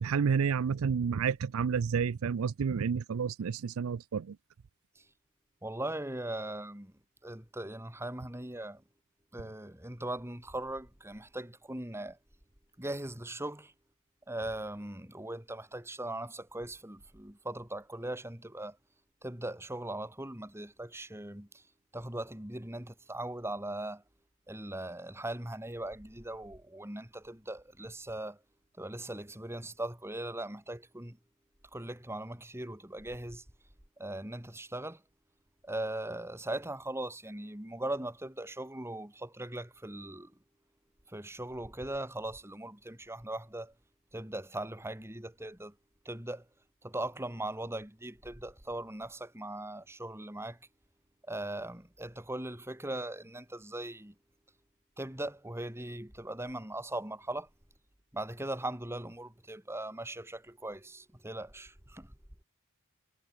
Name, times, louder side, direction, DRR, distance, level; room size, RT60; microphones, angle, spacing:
voice 1, 0.0-4.4, right 6 dB, 70° right, 0.4 m, -30 dB
voice 2, 5.6-6.9 7.2-8.8 9.3-12.2 12.8-13.7 14.3-18.8 19.2-21.5 21.9-24.0 24.5-28.4 28.8-31.2 31.7-33.4 34.0-35.0 35.6-40.3 41.1-43.7 44.1-45.7 46.0-46.4 46.8-50.6 51.3-54.1 55.0-57.5 58.1-62.1, right 1 dB, 10° right, 2.7 m, -39 dB
head